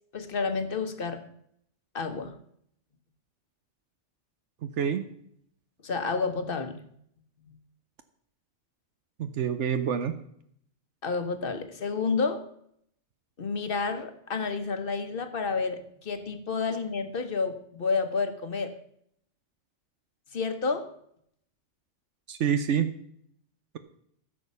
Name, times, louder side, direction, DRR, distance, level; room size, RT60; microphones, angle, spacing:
voice 1, 0.1-1.2 1.9-2.3 5.8-6.8 11.0-12.4 13.4-18.7 20.3-20.9, left 4 dB, 50° left, 8 dB, 1.2 m, -30 dB
voice 2, 4.6-5.0 9.2-10.1 22.3-22.9, right 8 dB, 70° right, 9 dB, 1.0 m, -27 dB
14.5 x 6.7 x 5.5 m, 0.70 s
omnidirectional pair, 1.3 m